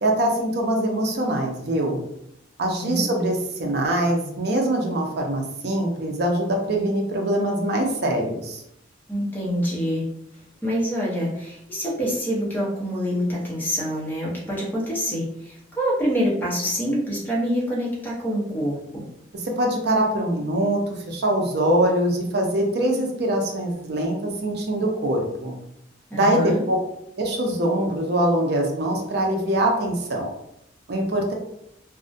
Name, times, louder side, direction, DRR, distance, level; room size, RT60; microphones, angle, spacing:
voice 1, 0.0-2.0 2.6-8.6 19.3-25.6 26.1-26.8 27.2-30.3 30.9-31.3, right 1 dB, 55° right, 1 dB, 0.5 m, -23 dB
voice 2, 9.1-10.1 10.6-19.0 26.1-26.6, equal, 10° left, -5 dB, 0.6 m, -26 dB
2.3 x 2.0 x 2.6 m, 0.79 s
head